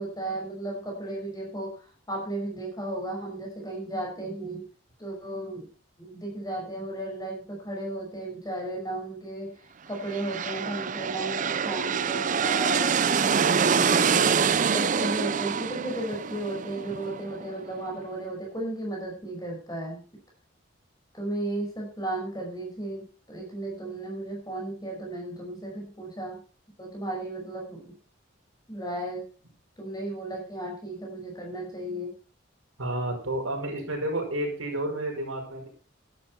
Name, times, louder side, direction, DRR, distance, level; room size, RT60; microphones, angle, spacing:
voice 1, 0.0-4.7 5.0-5.7 6.0-14.2 14.7-20.0 21.1-26.4 26.8-27.9 28.7-29.3 29.8-32.1, right 1 dB, 20° left, -1 dB, 5.7 m, -34 dB
sound 1, 10.0-17.6, right 6 dB, 35° right, 0.5 m, -25 dB
voice 2, 32.8-35.7, right 1 dB, 85° right, 1 dB, 5.6 m, -30 dB
12.0 x 11.0 x 4.4 m, 0.37 s
head